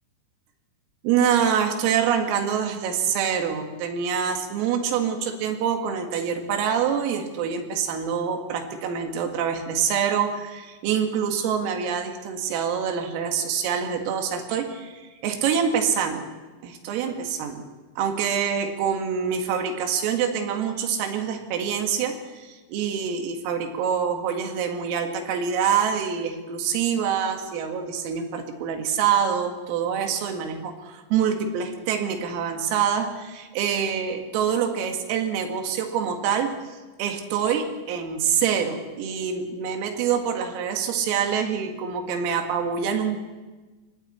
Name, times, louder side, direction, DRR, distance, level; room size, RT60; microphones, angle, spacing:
voice 1, 1.0-16.3 16.6-17.7 18.0-36.5 37.0-43.3, right 7 dB, 85° right, 5 dB, 4.5 m, -25 dB
28.5 x 22.5 x 4.3 m, 1.2 s
omnidirectional pair, 5.9 m